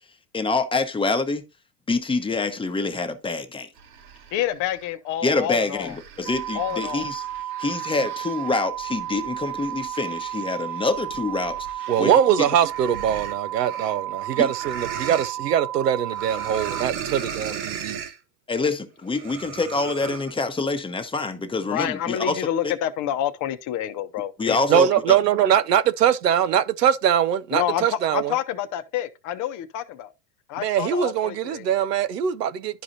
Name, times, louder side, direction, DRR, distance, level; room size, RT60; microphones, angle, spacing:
voice 1, 0.3-1.4 1.9-3.7 5.2-7.2 7.6-12.1 12.4-12.5 14.4-14.5 18.5-22.7 24.4-25.2, left 3 dB, 10° left, 1.0 m, -26 dB
sound 1, 3.8-4.9 5.4-12.2 12.5-15.3 16.1-18.2 19.1-20.3, right 7 dB, 65° right, 1.5 m, -38 dB
voice 2, 4.3-6.0 6.5-7.1 21.7-24.8 27.5-30.1 30.5-31.8, left 11 dB, 40° left, 0.8 m, -28 dB
sound 2, 6.3-16.8, right 12 dB, 40° right, 0.5 m, -32 dB
voice 3, 11.9-18.0 24.7-28.3 30.6-32.8, right 9 dB, 80° right, 0.7 m, -22 dB
12.0 x 4.9 x 2.7 m
hypercardioid pair, 90°, 48 cm